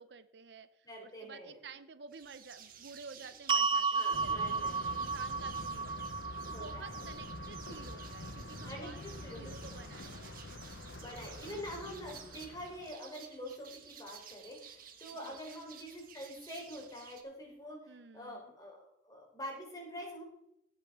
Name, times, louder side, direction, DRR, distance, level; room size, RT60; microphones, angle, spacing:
voice 1, 0.0-9.0 9.4-10.3 15.2-15.4 17.9-18.4, right 4 dB, 75° right, 13 dB, 0.7 m, -52 dB
voice 2, 0.8-1.6 3.9-5.0 6.4-6.9 8.7-9.8 11.0-20.2, equal, 20° left, 0 dB, 3.9 m, -46 dB
sound 1, 2.1-17.2, right 8 dB, 55° right, 1.4 m, -54 dB
sound 2, 3.5-9.7, right 4 dB, 30° right, 0.4 m, -35 dB
Thunder, 4.1-12.9, left 2 dB, 90° left, 0.9 m, -47 dB
17.0 x 6.7 x 4.9 m, 0.79 s
head